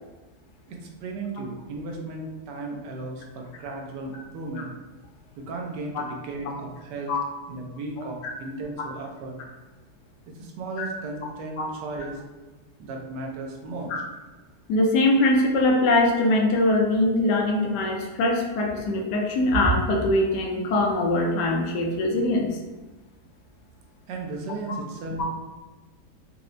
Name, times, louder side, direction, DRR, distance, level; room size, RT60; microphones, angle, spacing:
voice 1, 0.7-4.7 5.4-7.2 7.5-9.4 10.3-12.2 12.8-13.9 24.1-25.3, right 2 dB, 85° right, 1 dB, 1.2 m, -35 dB
voice 2, 14.7-22.6 25.2-25.3, left 1 dB, 80° left, 0 dB, 1.2 m, -22 dB
4.3 x 2.0 x 2.5 m, 1.2 s
omnidirectional pair, 1.8 m